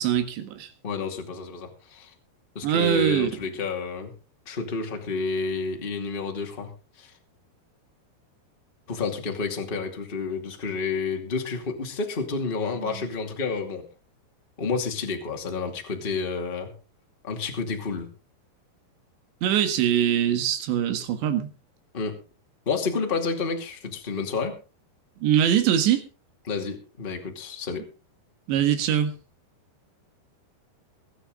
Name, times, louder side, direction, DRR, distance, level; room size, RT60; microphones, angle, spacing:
voice 1, 0.0-0.7 2.6-3.3 19.4-21.5 25.2-26.1 28.5-29.1, right 10 dB, 75° right, 3.9 m, -22 dB
voice 2, 0.8-2.1 2.5-4.1 4.4-6.7 7.0-7.1 8.9-13.8 14.6-16.7 17.2-18.1 21.9-22.1 22.6-24.6 26.4-27.8, left 4 dB, 20° left, 1.4 m, -30 dB
22.0 x 9.4 x 3.8 m
omnidirectional pair, 5.2 m